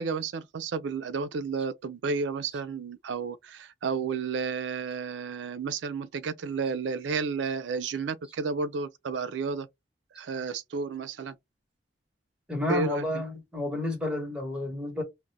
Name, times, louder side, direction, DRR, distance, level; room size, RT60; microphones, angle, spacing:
voice 1, 0.0-9.7 10.1-11.4 12.7-13.2, right 5 dB, 85° right, 0.4 m, -32 dB
voice 2, 12.5-15.0, left 2 dB, 5° right, 0.9 m, -31 dB
2.4 x 2.1 x 3.9 m
head